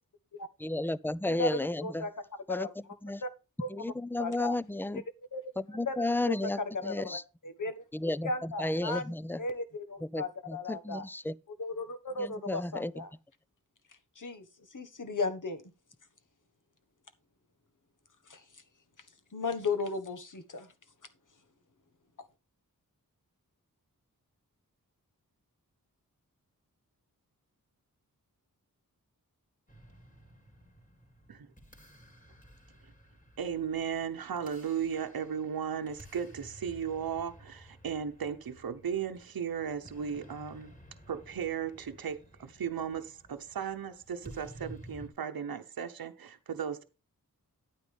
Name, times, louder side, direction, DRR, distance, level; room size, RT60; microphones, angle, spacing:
voice 1, 0.6-2.1 2.5-2.7 3.0-3.2 3.7-5.0 5.6-7.2 7.9-9.4 10.0-11.3 12.2-12.9, left 1 dB, 5° left, 0.5 m, -33 dB
voice 2, 1.2-2.1 2.5-2.7 3.2-3.3 3.6-3.7 4.2-4.6 5.3-5.4 5.8-6.0 6.2-7.8 8.2-11.0 11.6-13.1 14.1-15.6 18.3-18.6 19.3-20.7, left 3 dB, 60° left, 1.5 m, -36 dB
sound 1, 29.7-45.1, right 1 dB, 20° left, 3.8 m, -54 dB
voice 3, 33.4-40.7 41.1-46.8, right 7 dB, 75° right, 0.9 m, -36 dB
10.5 x 9.2 x 3.4 m
cardioid pair, 50°, 36 cm